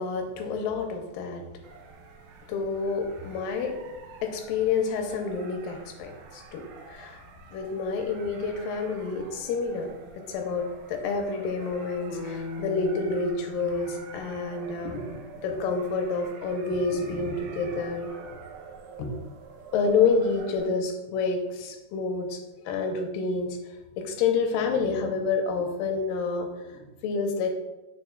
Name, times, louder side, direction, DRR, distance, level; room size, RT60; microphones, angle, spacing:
voice 1, 0.0-1.5 2.5-3.8 4.2-7.2 7.5-18.1 19.0-19.1 19.7-23.6 24.0-27.5, left 4 dB, 90° left, 4 dB, 2.4 m, -28 dB
sound 1, 1.6-20.7, right 5 dB, 75° right, 2.1 m, -47 dB
sound 2, 12.1-16.1, left 4 dB, 70° left, 2.1 m, -40 dB
6.9 x 5.9 x 2.3 m, 1.0 s
omnidirectional pair, 4.0 m